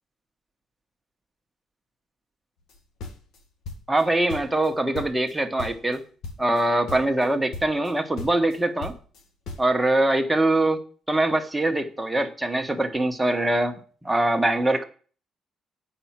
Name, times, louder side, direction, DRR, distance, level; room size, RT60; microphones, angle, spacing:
sound 1, 2.7-4.0 4.3-5.3 5.6-6.0 6.2-6.6 6.9-7.3 7.5-7.9 8.2-9.7, left 3 dB, 85° left, 1.8 m, -37 dB
voice 1, 3.9-6.0 6.4-8.9 9.6-10.8 11.1-13.8 14.0-14.8, right 1 dB, 10° right, 4 dB, 1.5 m, -23 dB
8.9 x 5.8 x 7.5 m, 0.41 s
cardioid pair, 90°, 0 cm